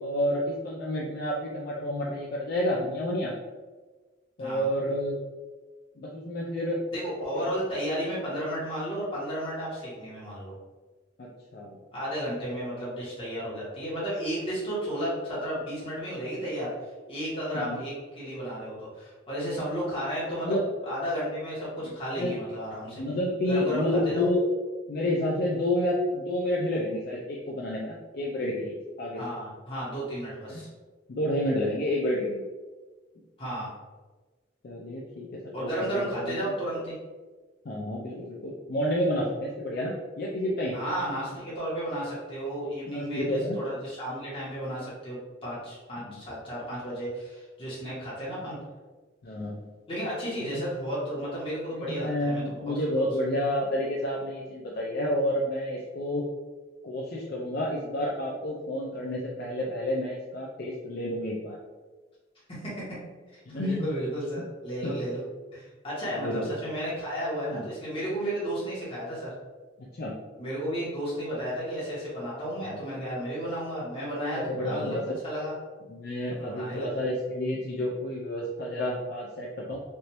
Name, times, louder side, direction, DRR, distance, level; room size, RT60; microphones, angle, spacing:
voice 1, 0.0-3.3 4.4-5.2 6.0-6.8 7.3-7.5 11.2-11.8 17.5-17.8 20.4-20.7 21.8-21.9 22.2-22.4 23.0-24.4 24.9-29.2 30.5-30.6 31.1-32.4 34.6-36.4 37.6-40.8 42.9-43.6 46.0-46.2 49.2-49.6 50.5-50.6 51.7-56.2 56.8-61.6 63.5-63.9 64.4-64.5 64.8-65.1 66.1-66.5 67.5-67.7 69.9-70.2 72.7-72.8 74.3-75.2 75.9-79.8, left 1 dB, 55° left, -3 dB, 0.4 m, -30 dB
voice 2, 6.9-10.5 11.9-16.7 17.1-20.5 20.8-23.0 23.5-24.3 29.1-30.7 33.4-33.8 35.5-36.9 40.7-48.6 49.9-52.7 62.5-62.8 63.3-69.3 70.4-75.5 76.4-77.0, equal, 30° left, -8 dB, 1.4 m, -33 dB
3.3 x 2.6 x 2.9 m, 1.3 s
head